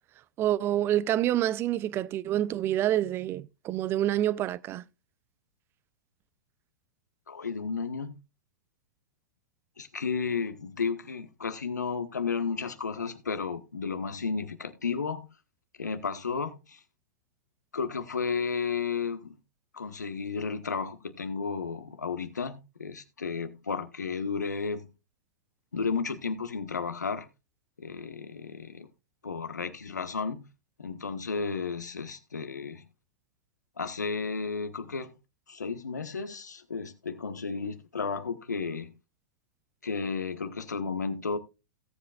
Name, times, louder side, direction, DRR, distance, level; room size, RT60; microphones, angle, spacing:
voice 1, 0.4-4.8, right 12 dB, 25° right, 0.5 m, -27 dB
voice 2, 7.3-8.1 9.8-15.3 15.8-16.8 17.7-19.4 19.7-24.8 25.7-27.3 27.8-28.9 29.2-30.4 30.8-32.9 33.8-35.1 35.5-38.9 39.8-41.4, left 5 dB, 75° left, 1.3 m, -33 dB
17.0 x 7.8 x 2.4 m
figure-of-eight pair, 105°, 9 cm